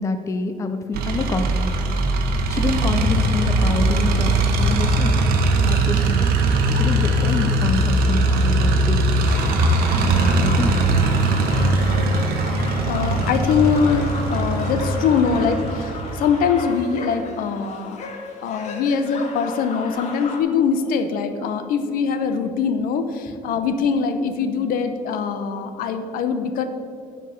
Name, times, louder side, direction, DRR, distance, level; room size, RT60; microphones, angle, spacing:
voice 1, 0.0-1.8 2.5-5.2 5.6-6.3 6.7-9.2 10.0-10.8, left 3 dB, 20° left, 7 dB, 0.5 m, -27 dB
sound 1, 0.9-16.5, right 2 dB, 90° right, 1.1 m, -20 dB
sound 2, 3.1-16.4, right 1 dB, 45° right, 1.7 m, -32 dB
sound 3, 9.2-20.4, left 3 dB, 50° left, 1.2 m, -34 dB
voice 2, 12.5-18.0 18.4-26.6, left 6 dB, 70° left, 8 dB, 0.8 m, -22 dB
9.7 x 4.7 x 7.0 m, 2.5 s
cardioid pair, 160°, 15 cm